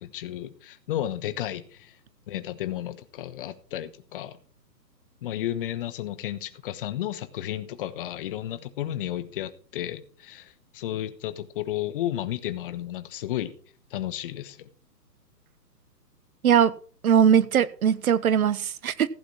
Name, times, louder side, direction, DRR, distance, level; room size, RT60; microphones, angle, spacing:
voice 1, 0.0-1.9 2.3-4.4 5.2-13.5 13.9-14.7, left 12 dB, 35° left, 1.1 m, -33 dB
voice 2, 16.4-16.7 17.0-19.1, right 8 dB, 55° right, 1.1 m, -20 dB
15.5 x 7.8 x 4.6 m
hypercardioid pair, 140°, 50 cm